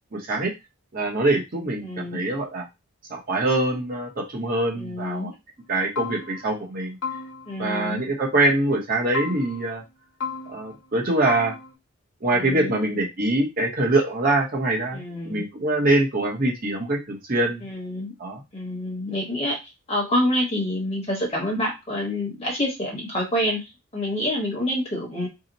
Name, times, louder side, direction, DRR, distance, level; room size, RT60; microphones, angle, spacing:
voice 1, 0.1-0.5 0.9-2.6 3.1-5.3 5.7-7.0 7.6-9.8 10.5-11.5 12.2-17.6 18.2-18.4, right 2 dB, 40° right, 0 dB, 0.8 m, -24 dB
voice 2, 1.8-2.2 4.8-5.3 7.5-8.0 12.3-12.8 14.9-15.5 17.6-18.1 18.5-19.6 19.9-23.6 23.9-25.3, left 1 dB, 25° left, -1 dB, 1.0 m, -27 dB
sound 1, 5.6-5.7 6.0-6.6 7.0-7.7 9.1-9.8 10.2-10.9 11.3-11.7, left 5 dB, 70° left, 0.9 m, -34 dB
2.8 x 2.0 x 3.9 m, 0.23 s
head